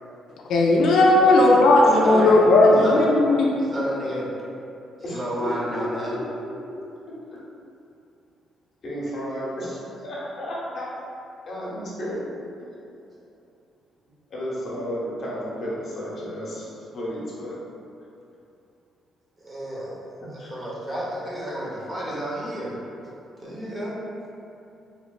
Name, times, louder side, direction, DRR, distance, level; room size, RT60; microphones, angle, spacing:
voice 1, 0.5-3.5, left 2 dB, 75° left, -2 dB, 0.4 m, -16 dB
voice 2, 1.0-1.4 2.0-2.4 2.8-3.1 3.7-4.3 5.1-6.2 19.4-20.0 20.3-22.8 23.4-23.9, equal, 30° right, -7 dB, 0.9 m, -31 dB
voice 3, 1.9-2.9 5.0-6.8 8.8-10.9 11.5-12.3 14.3-17.6 20.4-20.7, equal, 55° left, -7 dB, 0.9 m, -32 dB
3.0 x 2.9 x 2.4 m, 2.7 s
cardioid pair, 90°, 0 cm